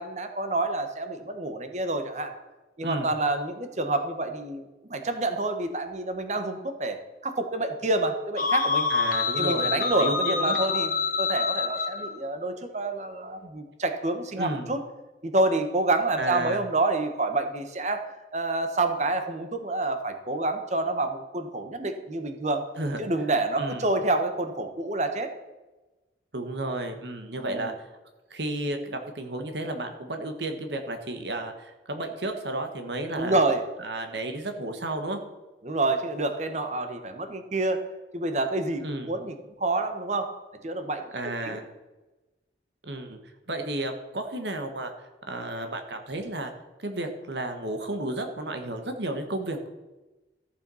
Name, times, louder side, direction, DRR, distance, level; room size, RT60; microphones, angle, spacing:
voice 1, 0.0-2.3 2.8-4.6 4.9-8.9 9.4-14.8 15.2-22.6 23.0-25.3 27.4-27.7 33.1-33.6 35.6-37.8 38.1-40.3 40.6-41.6, right 2 dB, 40° right, 7 dB, 1.2 m, -28 dB
sound 1, 8.4-12.1, left 5 dB, 50° left, 1.4 m, -26 dB
voice 2, 8.9-10.6 14.4-14.7 16.2-16.6 22.8-23.0 23.6-23.9 26.3-27.9 28.3-33.4 33.8-35.2 38.8-39.1 41.1-41.7 42.8-43.2 43.5-46.5 46.8-49.7, right 1 dB, 80° right, 6 dB, 1.4 m, -32 dB
14.0 x 6.8 x 5.6 m, 1.1 s
head